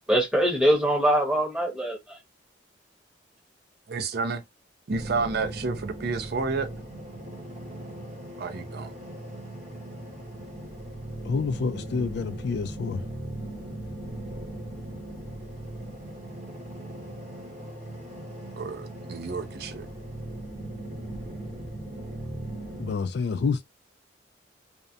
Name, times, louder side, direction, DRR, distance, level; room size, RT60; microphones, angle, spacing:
voice 1, 0.1-2.2, equal, 5° right, 0.9 m, -23 dB
voice 2, 3.9-4.4 4.9-6.7 8.4-8.9 18.6-19.9, right 4 dB, 55° right, 0.4 m, -30 dB
sound 1, 4.9-22.9, right 1 dB, 40° right, 1.0 m, -39 dB
voice 3, 11.2-13.0 22.8-23.6, left 5 dB, 60° left, 0.3 m, -28 dB
2.8 x 2.1 x 2.4 m
head